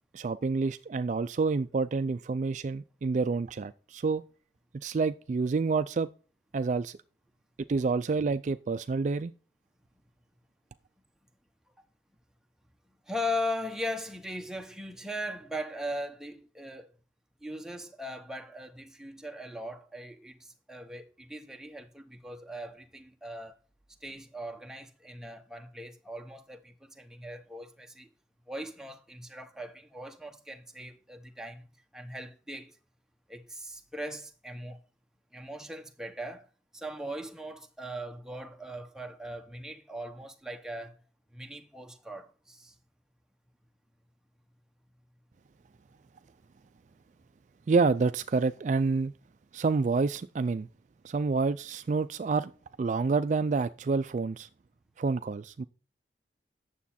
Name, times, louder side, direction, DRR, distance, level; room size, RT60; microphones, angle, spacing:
voice 1, 0.1-4.2 4.7-6.1 6.5-7.0 7.7-9.3 47.7-49.1 49.5-50.7 51.0-52.5 52.8-54.5 55.0-55.6, right 4 dB, 40° right, 0.3 m, -28 dB
voice 2, 13.1-16.9 17.4-23.6 24.0-28.1 28.5-31.6 31.9-32.8 33.3-34.8 35.3-36.5 36.7-40.9 41.3-42.8, left 1 dB, 5° right, 0.8 m, -39 dB
9.4 x 7.2 x 4.2 m
head